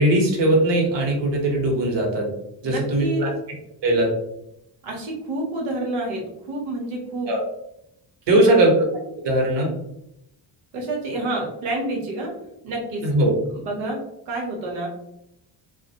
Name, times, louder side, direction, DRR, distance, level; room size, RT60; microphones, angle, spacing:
voice 1, 0.0-2.3 2.6-3.3 3.8-4.1 7.3-7.4 8.3-8.7 9.2-9.7 13.0-13.3, right 1 dB, 55° right, 0 dB, 1.1 m, -19 dB
voice 2, 2.6-3.2 4.8-7.3 8.3-8.6 10.7-12.3 12.6-13.1 13.5-14.9, right 2 dB, 80° right, 0 dB, 1.0 m, -28 dB
2.3 x 2.2 x 2.8 m, 0.80 s
supercardioid pair, 55°, 50 cm